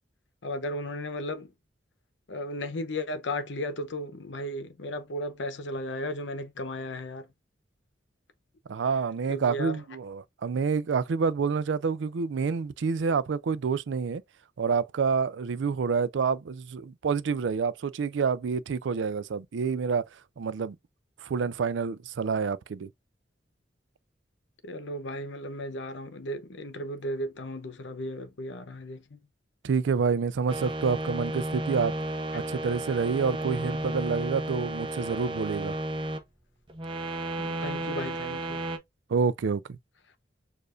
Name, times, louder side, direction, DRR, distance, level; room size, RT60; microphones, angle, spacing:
voice 1, 0.4-1.5 2.3-7.3 9.3-9.8 24.6-29.2 32.3-32.4 37.4-38.7, left 1 dB, 90° left, 0.8 m, -35 dB
voice 2, 8.7-14.2 14.6-20.8 21.2-22.9 29.6-31.9 32.3-35.7 39.1-39.8, right 5 dB, 90° right, 0.4 m, -28 dB
sound 1, 30.5-36.2 36.7-38.8, right 1 dB, 30° right, 0.7 m, -33 dB
6.7 x 2.5 x 2.5 m
head